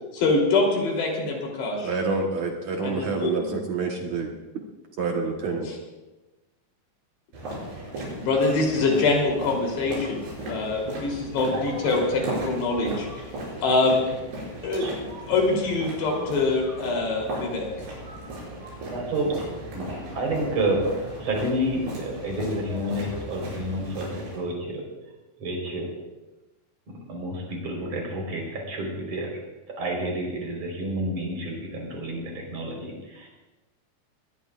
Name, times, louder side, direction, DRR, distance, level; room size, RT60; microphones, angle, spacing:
voice 1, 0.1-1.9 2.8-3.5 5.7-5.8 8.2-13.1 13.6-14.1 14.6-14.9 15.2-17.7, left 3 dB, 85° left, 0 dB, 5.5 m, -24 dB
voice 2, 1.8-4.3 5.0-5.7, right 4 dB, 60° right, 1 dB, 2.0 m, -27 dB
sound 1, 7.3-24.4, right 1 dB, 80° right, 8.5 m, -36 dB
voice 3, 18.9-19.4 19.7-20.9 21.2-24.9 25.4-25.9 26.9-29.4 29.8-33.3, right 1 dB, 40° right, 0 dB, 5.2 m, -29 dB
21.5 x 19.5 x 2.5 m, 1.1 s
omnidirectional pair, 4.8 m